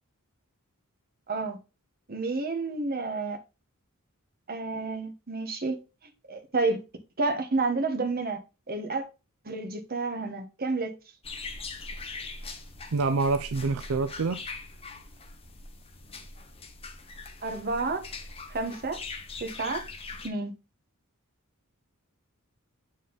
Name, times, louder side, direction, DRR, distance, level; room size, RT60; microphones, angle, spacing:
voice 1, 1.3-1.6 2.1-3.4 4.5-5.8 6.3-6.8 7.2-8.4 8.7-9.0 9.4-10.9 17.4-18.0 18.5-19.0 19.4-19.8 20.2-20.5, right 3 dB, 45° right, 1.2 m, -30 dB
sound 1, 11.2-20.3, left 3 dB, 25° left, 0.9 m, -41 dB
voice 2, 12.9-14.4, right 4 dB, 70° right, 0.5 m, -26 dB
7.8 x 3.9 x 3.8 m
head